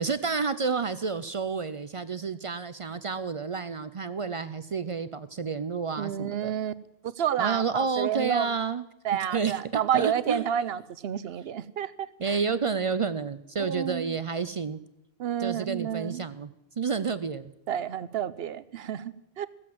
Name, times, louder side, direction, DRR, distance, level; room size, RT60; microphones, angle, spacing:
voice 1, 0.0-6.5 7.4-8.9 9.3-10.5 12.2-14.8 15.4-16.5 16.8-17.5, right 5 dB, 45° right, 14 dB, 0.4 m, -30 dB
voice 2, 6.0-6.7 7.2-8.5 9.0-12.4 13.6-14.1 15.2-16.2 17.7-19.5, right 9 dB, 75° right, 16 dB, 0.9 m, -30 dB
16.0 x 7.7 x 7.6 m, 0.90 s
omnidirectional pair, 1.0 m